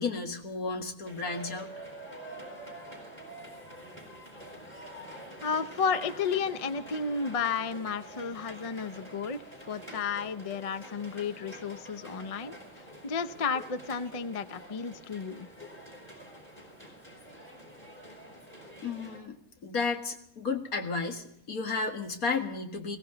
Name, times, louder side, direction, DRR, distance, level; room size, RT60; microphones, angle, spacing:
voice 1, 0.0-1.7 18.8-19.4 19.6-23.0, left 4 dB, 90° left, 4 dB, 2.3 m, -33 dB
sound 1, 1.0-19.2, right 1 dB, 10° left, 5.0 m, -47 dB
voice 2, 5.4-12.5 13.0-15.5, left 5 dB, 45° left, 11 dB, 0.4 m, -32 dB
21.5 x 16.5 x 3.9 m, 0.74 s
omnidirectional pair, 1.5 m